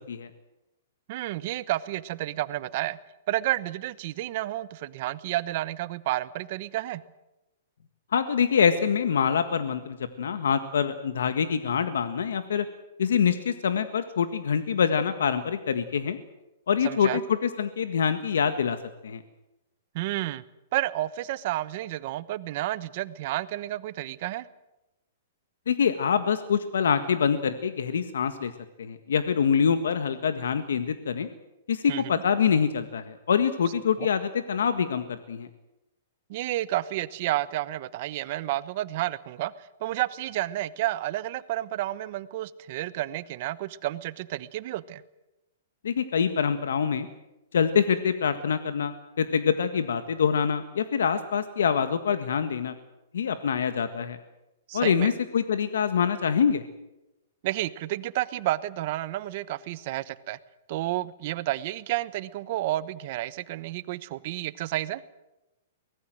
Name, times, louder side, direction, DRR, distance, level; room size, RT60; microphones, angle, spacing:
voice 1, 1.1-3.0 3.3-7.0 16.8-17.2 19.9-20.4 20.7-24.5 31.9-32.1 36.3-45.0 54.7-55.1 57.4-60.4 60.7-65.0, right 15 dB, 45° right, 16 dB, 1.0 m, -31 dB
voice 2, 8.1-12.6 13.0-16.2 16.7-18.8 19.0-19.2 25.7-28.5 28.8-31.3 31.7-35.5 45.8-47.1 47.5-52.7 53.1-54.2 54.7-56.6, left 7 dB, 85° left, 10 dB, 1.6 m, -25 dB
23.5 x 19.5 x 7.7 m, 0.96 s
hypercardioid pair, 160°, 0 cm